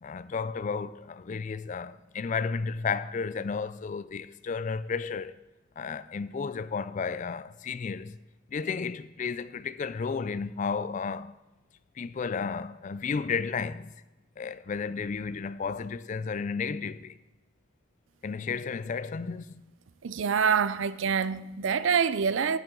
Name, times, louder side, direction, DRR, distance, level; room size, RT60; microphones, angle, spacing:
voice 1, 0.0-5.3 5.8-8.2 8.5-11.4 12.0-13.9 14.4-17.2 18.2-19.6, left 5 dB, 35° left, 0.3 m, -33 dB
voice 2, 20.0-22.6, right 6 dB, 60° right, 0.4 m, -26 dB
10.5 x 10.5 x 3.8 m
head